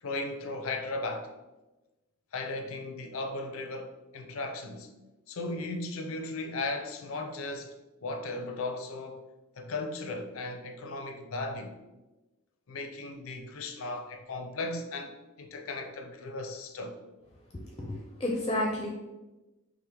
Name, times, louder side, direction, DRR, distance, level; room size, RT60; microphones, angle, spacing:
voice 1, 0.0-1.3 2.3-4.9 5.3-7.7 8.0-9.2 9.6-11.8 12.7-17.0, left 2 dB, 75° left, 0.5 m, -36 dB
voice 2, 17.5-18.9, left 1 dB, 20° left, 0.4 m, -31 dB
5.6 x 2.1 x 3.5 m
head